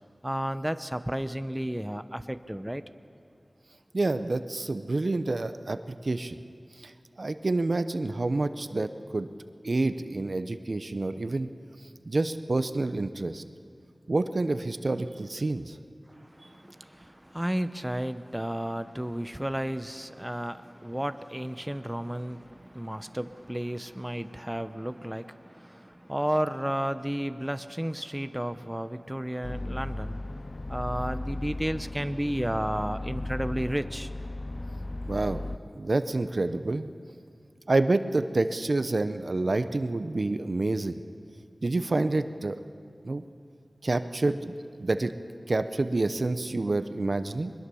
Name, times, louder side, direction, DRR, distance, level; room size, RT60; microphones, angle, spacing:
voice 1, 0.2-2.8 16.1-30.2 30.7-34.1, equal, 10° right, 11 dB, 0.8 m, -32 dB
voice 2, 3.9-6.4 6.8-6.9 7.2-9.3 9.6-11.5 12.1-13.4 14.1-15.8 35.1-35.4 35.7-36.9 37.7-40.9 41.6-42.6 43.0-43.2 43.8-45.1 45.5-47.5, right 2 dB, 65° right, 11 dB, 0.8 m, -28 dB
sound 1, 29.4-35.6, left 2 dB, 50° left, 0.5 m, -36 dB
22.5 x 21.0 x 7.0 m, 2.4 s
wide cardioid pair, 60°, 0 cm